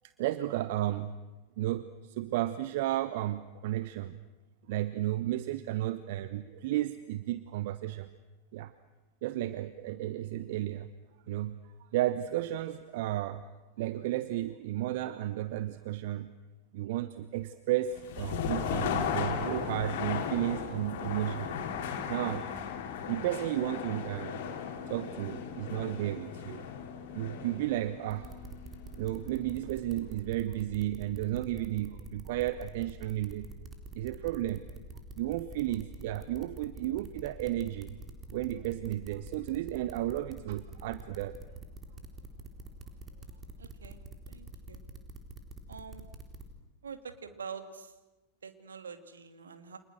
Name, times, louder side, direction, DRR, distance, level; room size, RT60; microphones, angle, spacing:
voice 1, 0.2-1.2 1.6-4.2 4.7-8.1 8.5-8.7 9.2-10.9 11.3-11.6 11.9-13.4 13.8-16.3 16.7-21.5 22.1-22.4 23.1-24.5 24.9-26.7 27.1-28.4 29.0-33.5 33.9-34.6 35.2-38.0 38.3-41.4, right 14 dB, 50° right, 13 dB, 1.0 m, -33 dB
sound 1, 17.9-29.7, left 7 dB, 50° left, 3.4 m, -36 dB
sound 2, 28.1-46.4, right 4 dB, 20° right, 3.8 m, -45 dB
voice 2, 43.6-44.8 45.7-46.1 46.8-48.0 48.4-49.8, right 6 dB, 70° right, 8 dB, 2.6 m, -45 dB
30.0 x 27.0 x 6.5 m, 1.1 s
figure-of-eight pair, 90°, 0 cm